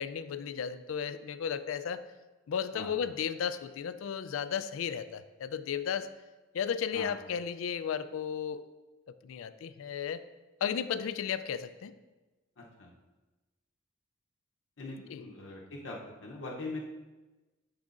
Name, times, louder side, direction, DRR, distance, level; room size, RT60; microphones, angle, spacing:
voice 1, 0.0-2.0 2.5-6.1 6.5-8.7 9.2-10.2 10.6-11.9 15.1-15.2, left 7 dB, 90° left, 13 dB, 0.3 m, -34 dB
voice 2, 12.6-12.9 14.8-16.8, left 2 dB, 65° left, -2 dB, 0.7 m, -42 dB
10.5 x 4.8 x 2.5 m, 1.2 s
head